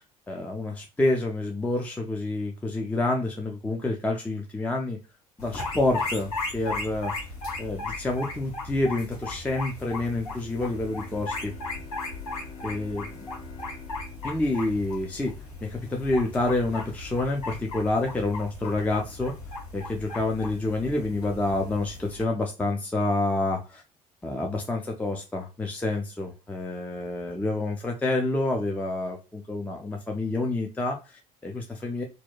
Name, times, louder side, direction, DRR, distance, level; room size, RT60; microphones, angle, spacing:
voice 1, 0.3-5.0 5.4-7.1 7.6-11.5 12.6-13.3 14.2-15.3 15.6-19.3 19.7-23.8 24.2-32.0, left 2 dB, 10° left, 1 dB, 0.4 m, -28 dB
sound 1, 5.4-22.2, left 3 dB, 75° left, 0.8 m, -37 dB
Bowed string instrument, 10.5-15.4, left 3 dB, 45° left, 0.8 m, -48 dB
2.7 x 2.1 x 2.3 m, 0.31 s
figure-of-eight pair, 55°, 19 cm